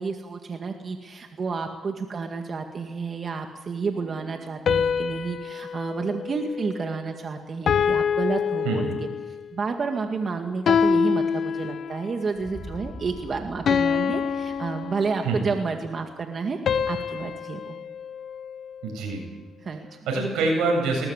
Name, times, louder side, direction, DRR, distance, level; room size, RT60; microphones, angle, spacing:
voice 1, 0.0-17.8 19.6-19.9, right 4 dB, 45° right, 4 dB, 2.0 m, -30 dB
sound 1, 4.7-7.2 7.7-9.4 10.7-12.2 13.7-15.5 16.7-19.0, left 6 dB, 60° left, 1.3 m, -26 dB
voice 2, 8.6-9.0 15.2-15.5 18.8-19.2 20.1-21.1, right 3 dB, 90° right, 1 dB, 7.9 m, -25 dB
sound 2, 12.3-16.4, equal, ahead, 2.4 m, -44 dB
21.0 x 19.5 x 8.2 m, 1.3 s
cardioid pair, 90°, 0 cm